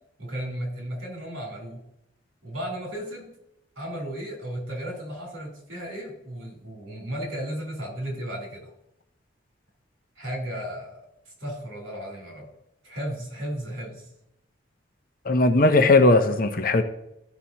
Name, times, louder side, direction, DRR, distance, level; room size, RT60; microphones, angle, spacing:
voice 1, 0.2-1.8 2.4-3.3 3.8-8.7 10.2-11.0 11.4-12.5 12.8-14.1, equal, 80° right, -1 dB, 3.6 m, -34 dB
voice 2, 15.3-16.8, left 2 dB, 45° left, 7 dB, 0.7 m, -18 dB
14.0 x 5.7 x 2.9 m, 0.82 s
head